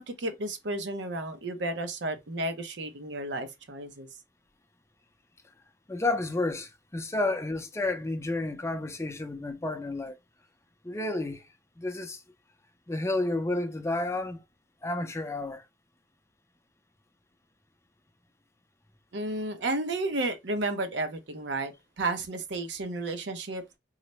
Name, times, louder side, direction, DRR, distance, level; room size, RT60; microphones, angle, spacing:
voice 1, 0.0-4.1 19.1-23.6, right 2 dB, 75° right, 0.7 m, -32 dB
voice 2, 5.9-10.1 10.8-11.4 11.8-12.2 12.9-14.4 14.8-15.6, left 2 dB, 15° left, 0.5 m, -31 dB
3.9 x 2.1 x 3.0 m
head